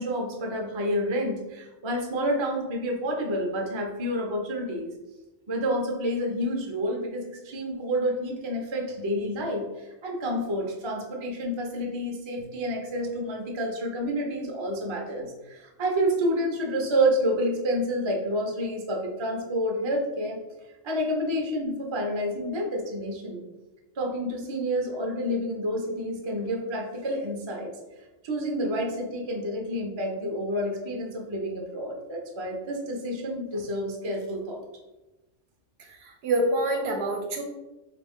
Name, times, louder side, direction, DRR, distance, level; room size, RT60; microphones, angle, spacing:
voice 1, 0.0-4.9 5.5-20.4 20.8-23.4 24.0-27.7 28.2-34.6, equal, 40° right, 0 dB, 0.4 m, -29 dB
voice 2, 35.8-37.4, right 1 dB, 65° right, 2 dB, 0.8 m, -27 dB
3.5 x 2.5 x 3.5 m, 1.1 s
omnidirectional pair, 1.3 m